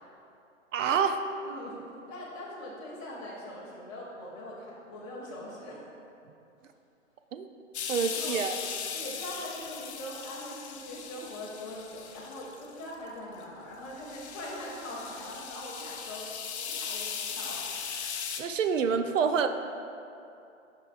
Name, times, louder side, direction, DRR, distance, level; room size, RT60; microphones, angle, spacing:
voice 1, 0.7-1.2 7.3-7.5 7.9-8.6 18.4-19.5, right 6 dB, 70° right, 8 dB, 0.6 m, -27 dB
voice 2, 1.4-1.8 2.1-5.8 8.1-8.4 8.9-16.3 16.5-17.8, left 1 dB, 15° left, -9 dB, 0.4 m, -42 dB
sound 1, 7.7-12.9 13.4-13.5 13.9-18.4, left 6 dB, 55° left, 0.7 m, -38 dB
9.7 x 5.4 x 2.5 m, 2.7 s
hypercardioid pair, 150°, 39 cm